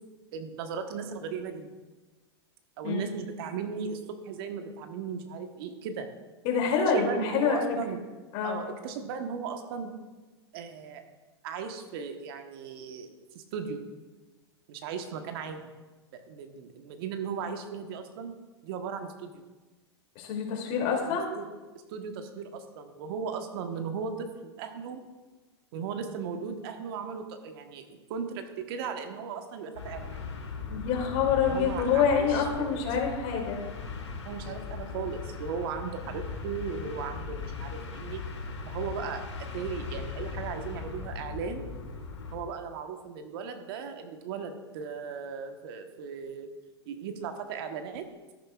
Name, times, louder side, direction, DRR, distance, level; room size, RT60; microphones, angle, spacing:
voice 1, 0.3-1.7 2.8-6.1 6.8-8.0 8.4-9.9 10.5-11.0 11.4-13.8 14.7-15.7 16.1-18.3 18.6-19.4 21.1-21.4 21.9-25.1 25.7-30.2 31.5-32.8 34.2-38.2 38.7-41.7 42.3-46.5 46.9-48.1, right 6 dB, 55° right, 6 dB, 1.2 m, -37 dB
voice 2, 6.4-7.6 8.3-8.6 20.1-21.3 30.7-33.6, left 6 dB, 50° left, 0 dB, 2.7 m, -26 dB
sound 1, 29.7-42.4, left 5 dB, 85° left, 1.7 m, -38 dB
13.0 x 11.5 x 2.4 m, 1.2 s
hypercardioid pair, 105°, 14 cm